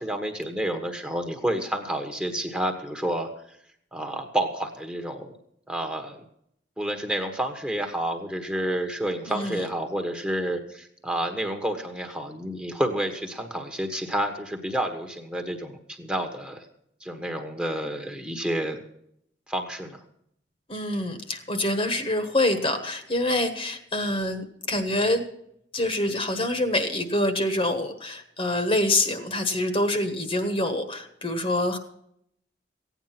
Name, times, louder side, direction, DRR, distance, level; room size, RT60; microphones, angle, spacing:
voice 1, 0.0-3.3 3.9-5.3 5.7-6.2 6.8-16.6 17.0-18.8 19.5-20.0, right 1 dB, 5° right, 3 dB, 1.3 m, -29 dB
voice 2, 9.3-9.6 20.7-25.2 25.7-31.8, left 1 dB, 30° left, 7 dB, 1.4 m, -26 dB
16.0 x 9.3 x 5.9 m, 0.72 s
head